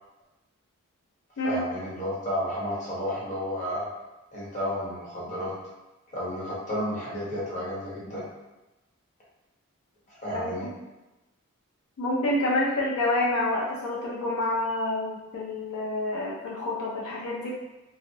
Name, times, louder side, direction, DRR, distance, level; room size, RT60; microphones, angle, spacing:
voice 1, 1.4-3.9 4.3-5.5 6.1-8.2 10.1-10.7, equal, 35° left, -7 dB, 0.8 m, -32 dB
voice 2, 10.3-10.7 12.0-17.6, left 1 dB, 75° left, -5 dB, 0.4 m, -28 dB
2.6 x 2.0 x 2.6 m, 1.0 s
head